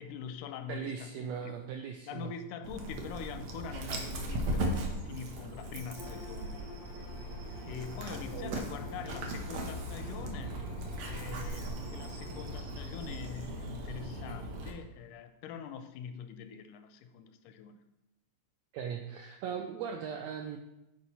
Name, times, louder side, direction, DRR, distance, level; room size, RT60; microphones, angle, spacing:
voice 1, 0.0-1.7 2.1-6.6 7.7-10.6 11.0-17.8, left 7 dB, 90° left, 9 dB, 2.1 m, -44 dB
voice 2, 0.7-2.3 8.3-8.6 18.7-20.6, right 7 dB, 85° right, 4 dB, 1.5 m, -39 dB
Dog, 2.6-14.7, right 1 dB, 65° right, 2.0 m, -38 dB
Bowed string instrument, 5.9-12.6, left 4 dB, 60° left, 0.9 m, -52 dB
9.2 x 4.5 x 4.1 m, 0.90 s
omnidirectional pair, 3.6 m